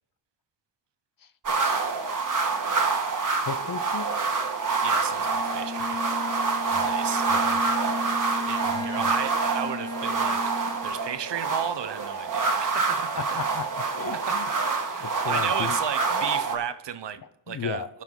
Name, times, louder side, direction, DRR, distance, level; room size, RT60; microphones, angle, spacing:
sound 1, 1.4-16.6, right 4 dB, 45° right, 1.6 m, -26 dB
voice 1, 3.4-4.1 6.5-7.9 8.7-9.1 13.2-14.5 15.0-15.8 16.1-16.2 17.5-17.9, left 7 dB, 50° left, 0.7 m, -36 dB
voice 2, 4.8-6.1 6.6-7.3 8.5-10.4 10.8-13.2 14.1-17.8, right 9 dB, 70° right, 0.8 m, -34 dB
Bowed string instrument, 5.2-11.3, left 1 dB, 10° left, 1.5 m, -35 dB
16.5 x 5.9 x 3.8 m
wide cardioid pair, 85°, 45 cm